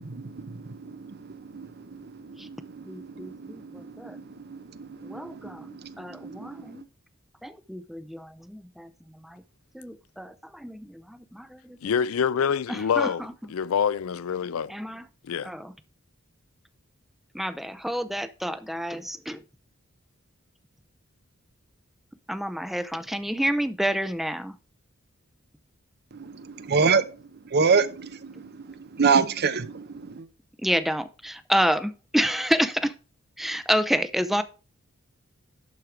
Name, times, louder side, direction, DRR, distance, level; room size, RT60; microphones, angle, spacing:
voice 1, 0.0-6.9 26.1-30.3, right 5 dB, 50° right, 0.7 m, -28 dB
voice 2, 2.9-4.2 5.0-6.9 7.4-9.4 9.7-11.8 12.7-13.3 14.7-15.1 15.4-15.7 17.3-19.4 22.3-24.5 30.6-32.9 33.4-34.4, equal, ahead, 0.5 m, -29 dB
voice 3, 11.8-14.7 15.2-15.5, left 7 dB, 75° left, 0.4 m, -26 dB
11.5 x 4.7 x 4.9 m
head